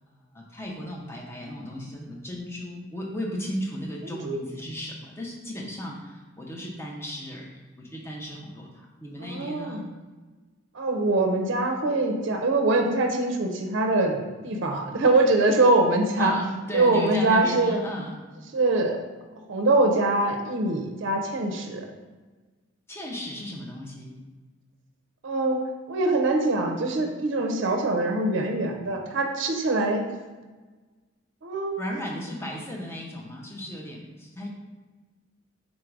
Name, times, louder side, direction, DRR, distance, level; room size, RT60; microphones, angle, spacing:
voice 1, 0.1-9.9 16.2-18.2 22.9-24.2 31.8-34.5, left 1 dB, 10° left, -1 dB, 0.6 m, -35 dB
voice 2, 4.0-4.4 9.2-9.8 10.7-16.3 16.7-17.8 18.5-19.0 19.5-21.8 25.2-25.6 25.9-30.0 31.4-31.8, right 2 dB, 70° right, 3 dB, 0.5 m, -23 dB
3.9 x 2.5 x 4.5 m, 1.3 s
head